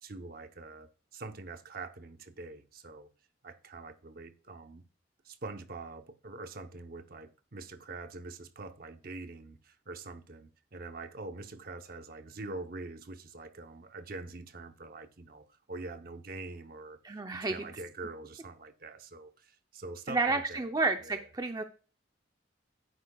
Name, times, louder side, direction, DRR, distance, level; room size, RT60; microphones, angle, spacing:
voice 1, 0.0-3.1 3.4-4.8 5.2-17.0 17.3-20.7 21.0-21.2, right 3 dB, 50° right, 0.8 m, -44 dB
voice 2, 17.0-17.7 20.1-21.6, right 3 dB, 20° right, 0.5 m, -31 dB
10.5 x 9.3 x 2.3 m
head